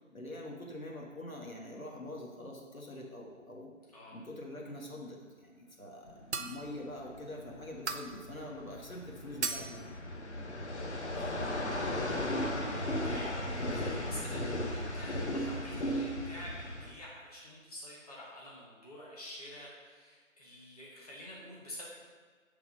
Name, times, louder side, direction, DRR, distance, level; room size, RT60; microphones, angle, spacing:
voice 1, 0.1-3.7 4.1-9.9, left 1 dB, 85° left, -1 dB, 1.5 m, -45 dB
sound 1, 6.1-16.9, left 1 dB, 55° left, 1.0 m, -36 dB
sound 2, 6.3-6.8 7.9-8.3 9.4-9.9, right 5 dB, 60° right, 0.5 m, -37 dB
voice 2, 11.1-11.5 12.1-12.4 12.6-13.4 13.7-21.9, left 1 dB, 30° left, -5 dB, 1.3 m, -48 dB
7.1 x 3.4 x 5.4 m, 1.5 s
figure-of-eight pair, 160°, 40 cm